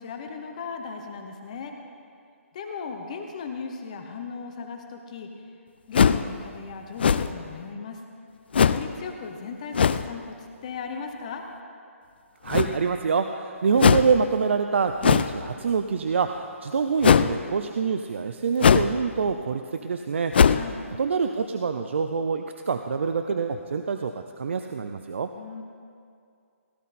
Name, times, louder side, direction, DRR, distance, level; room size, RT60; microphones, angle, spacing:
voice 1, 0.0-1.7 2.5-5.3 5.9-8.0 8.6-10.4 10.6-11.5 20.5-20.8 25.3-25.6, left 5 dB, 30° left, 4 dB, 0.9 m, -37 dB
sound 1, 5.9-6.3 7.0-7.5 8.5-8.9 9.7-10.1 12.5-13.0 13.8-14.2 15.0-15.4 17.0-17.3 18.6-19.0 19.3-19.4 20.3-20.7, left 7 dB, 45° left, 0.4 m, -19 dB
voice 2, 12.4-20.6 21.0-25.3, right 5 dB, 55° right, 6 dB, 0.5 m, -26 dB
17.0 x 12.0 x 4.2 m, 2.4 s
hypercardioid pair, 170°, 8 cm